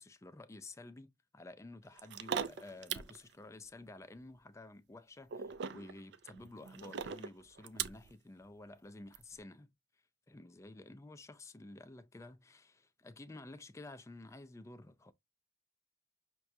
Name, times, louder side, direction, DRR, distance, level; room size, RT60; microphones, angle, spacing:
voice 1, 0.0-9.7 10.3-15.1, left 2 dB, 15° left, 0.3 m, -52 dB
sound 1, 2.0-3.2 5.3-8.1 9.1-9.2, right 7 dB, 65° right, 0.4 m, -40 dB
5.7 x 2.2 x 2.6 m
head